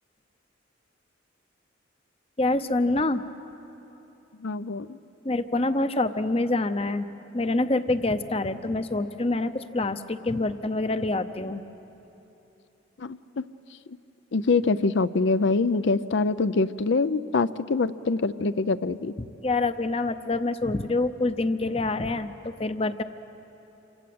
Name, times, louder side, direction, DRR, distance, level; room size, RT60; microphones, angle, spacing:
voice 1, 2.4-3.2 5.2-7.0 7.3-11.6 19.4-23.0, left 2 dB, 30° left, 11 dB, 0.7 m, -26 dB
voice 2, 4.4-5.0 13.0-13.5 13.9-14.0 14.3-19.1, left 3 dB, 65° left, 14 dB, 0.5 m, -25 dB
28.5 x 25.0 x 7.8 m, 3.0 s
head